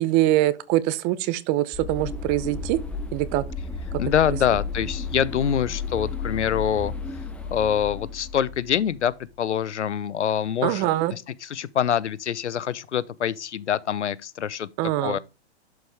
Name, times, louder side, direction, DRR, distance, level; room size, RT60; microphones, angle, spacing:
voice 1, 0.0-2.8 3.1-3.4 10.6-11.1 14.8-15.2, right 15 dB, 25° right, 0.6 m, -23 dB
sound 1, 1.7-9.1, left 4 dB, 5° left, 0.9 m, -33 dB
voice 2, 4.0-6.9 7.5-14.7 15.0-15.2, left 9 dB, 90° left, 0.7 m, -25 dB
11.5 x 4.7 x 3.4 m
hypercardioid pair, 135°, 34 cm